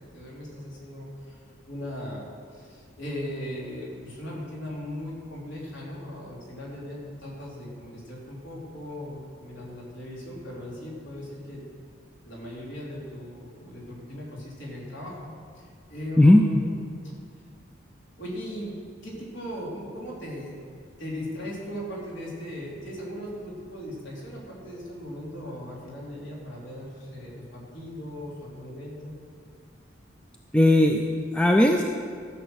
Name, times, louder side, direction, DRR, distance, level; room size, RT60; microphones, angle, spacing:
voice 1, 0.1-1.4 1.7-2.3 2.5-11.6 12.2-16.7 18.2-20.6 21.0-29.1, equal, 70° left, -4 dB, 3.4 m, -38 dB
voice 2, 30.5-31.8, left 1 dB, 5° left, 2 dB, 0.4 m, -17 dB
14.0 x 7.2 x 6.4 m, 2.1 s
head